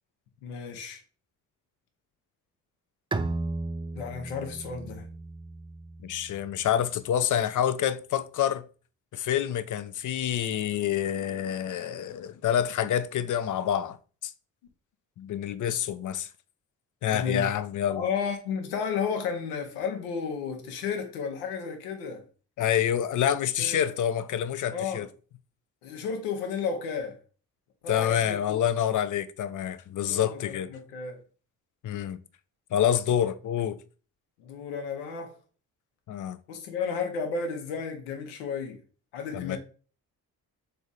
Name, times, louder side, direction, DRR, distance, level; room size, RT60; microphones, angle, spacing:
voice 1, 0.4-1.0 3.9-5.1 17.0-17.5 17.9-22.3 23.6-23.8 24.7-25.1 25.8-27.2 27.8-28.6 30.1-31.2 34.4-35.3 36.5-38.8 39.1-39.6, left 6 dB, 90° left, 1.0 m, -33 dB
Bowed string instrument, 3.1-6.6, right 3 dB, 15° right, 0.4 m, -35 dB
voice 2, 6.0-8.6 9.1-14.0 14.2-14.3 15.2-16.3 17.0-18.0 22.6-25.1 27.9-30.7 31.8-32.2 32.7-33.8 36.1-36.4 39.3-39.6, left 10 dB, 50° left, 0.6 m, -27 dB
3.5 x 3.3 x 4.0 m
hypercardioid pair, 55°, 41 cm